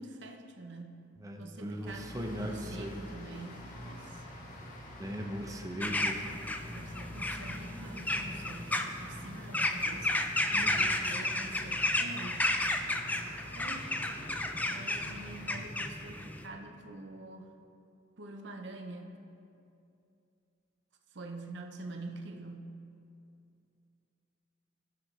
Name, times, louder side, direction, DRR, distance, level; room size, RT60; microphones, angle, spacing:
voice 1, 0.0-1.1 1.4-4.3 6.7-10.1 11.0-12.5 13.5-14.0 14.7-17.5 18.2-19.2 21.1-22.8, right 2 dB, 70° right, 4 dB, 0.8 m, -45 dB
voice 2, 1.2-3.0 5.0-6.2 10.5-11.0, equal, 20° right, 2 dB, 0.8 m, -39 dB
sound 1, 1.8-15.6, left 1 dB, 45° left, 1.4 m, -47 dB
sound 2, 5.8-16.5, left 2 dB, 10° left, 0.5 m, -33 dB
18.0 x 6.3 x 3.3 m, 2.6 s
head